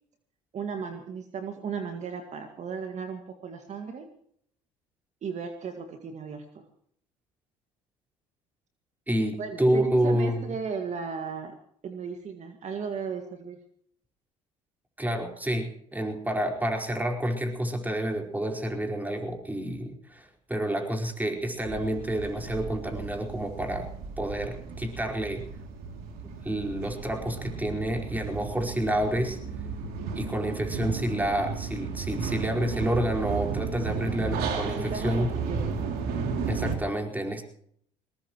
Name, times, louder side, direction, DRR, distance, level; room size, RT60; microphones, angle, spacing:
voice 1, 0.5-4.1 5.2-6.6 9.4-11.6 11.8-13.6 34.6-35.9, right 6 dB, 45° right, 5 dB, 2.0 m, -36 dB
voice 2, 9.1-10.4 15.0-23.9 24.2-25.4 26.2-29.4 30.2-35.3 36.5-37.4, right 1 dB, 10° right, 2 dB, 4.7 m, -29 dB
sound 1, 21.6-36.8, right 5 dB, 70° right, 2.9 m, -34 dB
21.0 x 20.5 x 3.1 m, 0.64 s
hypercardioid pair, 70°, 16 cm